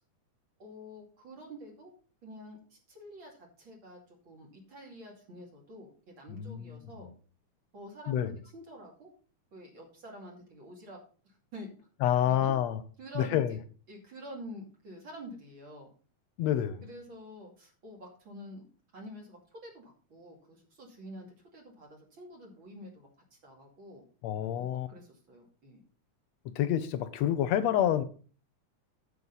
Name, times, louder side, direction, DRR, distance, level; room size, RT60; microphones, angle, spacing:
voice 1, 0.6-1.9 2.2-7.1 7.7-9.1 9.5-11.0 11.2-11.7 12.2-12.6 13.0-13.6 13.9-15.9 16.8-18.6 18.9-24.0 24.6-25.8, equal, 40° right, 3.0 m, -48 dB
voice 2, 6.3-7.1 8.1-8.3 12.0-12.8 13.2-13.6 16.4-16.9 24.2-24.9 26.5-28.0, left 11 dB, 70° left, 1.8 m, -28 dB
9.5 x 8.3 x 4.0 m
omnidirectional pair, 3.5 m